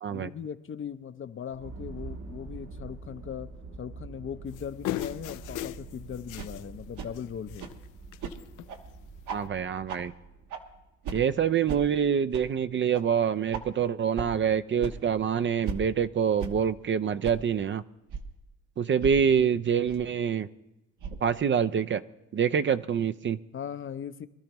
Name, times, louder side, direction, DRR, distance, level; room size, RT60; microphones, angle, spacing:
voice 1, 0.1-3.5 3.8-7.7 23.5-24.3, left 8 dB, 40° left, 12 dB, 0.6 m, -39 dB
sound 1, 1.5-11.1, right 3 dB, 55° right, 1.3 m, -45 dB
sound 2, 4.5-6.7 6.9-7.2 7.5-7.8 8.1-8.7 9.4-9.5, left 14 dB, 85° left, 0.5 m, -37 dB
sound 3, 5.0-5.1 5.6-5.7 6.4-6.5 7.0-7.1 7.6-7.7 8.2-8.3 8.7-8.8 9.3-9.4 9.9-10.0 10.5-10.6 11.0-11.2 11.7-11.8 12.3-12.4 12.9-13.0 13.5-13.6 14.2-14.3 14.8-14.9 15.6-15.8 16.4-16.5 17.2-17.3 18.1-18.2 19.0-19.1 19.9-20.0 21.0-21.2, right 6 dB, 85° right, 1.3 m, -36 dB
voice 2, 9.3-10.1 11.1-17.8 18.8-20.5 21.2-22.0 22.3-23.4, right 7 dB, 40° right, 12 dB, 0.5 m, -26 dB
23.0 x 12.5 x 3.0 m, 0.94 s
cardioid pair, 90°, 30 cm